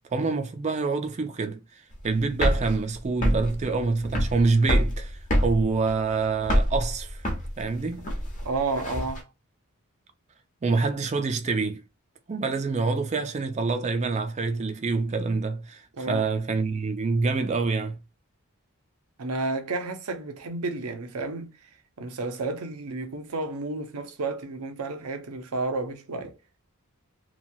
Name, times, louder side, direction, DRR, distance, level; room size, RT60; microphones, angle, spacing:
voice 1, 0.1-7.2 7.6-8.1 10.6-11.8 12.3-18.0, right 4 dB, 30° right, 0.4 m, -26 dB
sound 1, 1.9-9.2, equal, 35° left, 0.8 m, -26 dB
voice 2, 8.4-9.3 16.0-16.2 19.2-21.5 22.0-26.4, right 3 dB, 85° right, 0.6 m, -31 dB
3.0 x 2.3 x 2.6 m
head